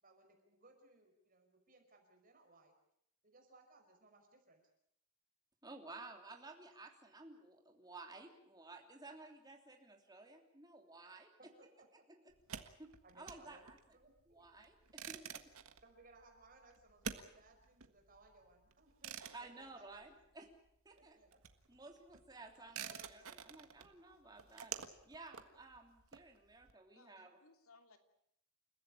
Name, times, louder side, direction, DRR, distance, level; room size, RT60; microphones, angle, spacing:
voice 1, 0.0-2.7 3.2-4.6 11.4-11.9 13.0-14.4 15.8-20.2 20.9-21.5 22.8-23.1, right 2 dB, 40° right, 4 dB, 5.4 m, -64 dB
voice 2, 5.6-11.5 12.1-12.2 12.8-13.8 14.3-15.5 19.3-20.5 20.8-21.2 21.7-24.7 25.0-27.4, right 3 dB, 20° right, 3 dB, 3.1 m, -55 dB
sound 1, 12.3-20.7 20.9-26.7, right 7 dB, 85° right, 1.7 m, -50 dB
voice 3, 26.9-28.0, left 3 dB, 80° left, 6 dB, 2.8 m, -65 dB
29.5 x 15.0 x 8.8 m, 0.75 s
head